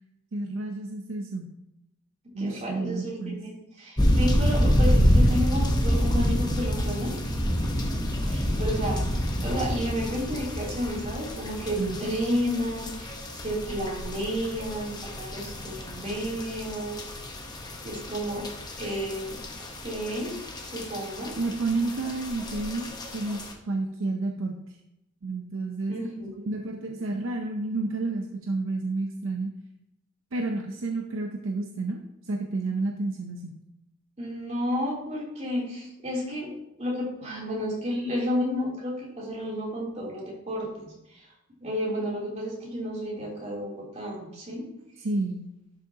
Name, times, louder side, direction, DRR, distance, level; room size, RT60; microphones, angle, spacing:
voice 1, 0.3-1.5 2.3-3.4 11.8-12.0 21.4-23.4 23.7-24.6 25.2-29.5 30.3-32.0 32.2-33.6 45.0-45.5, right 3 dB, 65° right, 3 dB, 0.7 m, -30 dB
voice 2, 2.2-7.1 8.2-9.0 9.4-17.0 17.8-18.5 18.8-19.4 19.8-20.4 20.6-21.3 25.9-26.5 34.2-36.5 36.8-41.3 41.6-44.6, equal, 35° right, -5 dB, 3.2 m, -31 dB
sound 1, 4.0-23.5, equal, 20° left, 1.0 m, -28 dB
11.5 x 6.3 x 2.9 m, 0.85 s
head